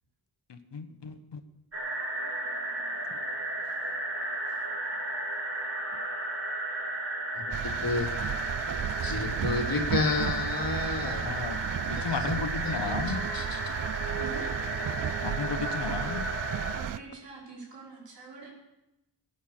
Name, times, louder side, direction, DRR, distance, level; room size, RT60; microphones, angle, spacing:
voice 1, 0.5-1.4 11.0-11.6 11.9-13.2 15.2-16.2, left 5 dB, 75° left, 9 dB, 1.4 m, -34 dB
sound 1, 1.7-16.8, right 1 dB, 35° right, 3.3 m, -34 dB
voice 2, 7.3-8.1 9.0-11.4 12.0-13.0 13.3-13.6, left 3 dB, 55° left, 2 dB, 2.5 m, -32 dB
sound 2, 7.5-17.0, right 10 dB, 50° right, 0.5 m, -34 dB
voice 3, 14.2-14.5 16.7-18.5, right 4 dB, 80° right, -3 dB, 5.3 m, -44 dB
20.0 x 9.3 x 6.7 m, 0.91 s
wide cardioid pair, 80°, 42 cm